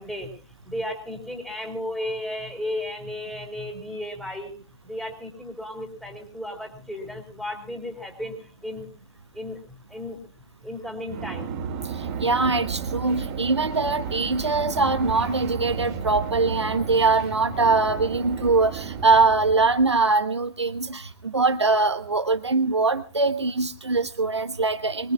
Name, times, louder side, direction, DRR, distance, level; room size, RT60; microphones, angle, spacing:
voice 1, 0.0-4.5 4.8-8.9 9.3-10.3 10.6-11.6, left 1 dB, ahead, 2 dB, 3.7 m, -34 dB
sound 1, 11.0-20.0, right 6 dB, 40° right, 2.6 m, -33 dB
voice 2, 12.2-25.1, right 3 dB, 85° right, 9 dB, 1.1 m, -22 dB
24.0 x 20.5 x 2.4 m, 0.36 s
figure-of-eight pair, 115°, 14 cm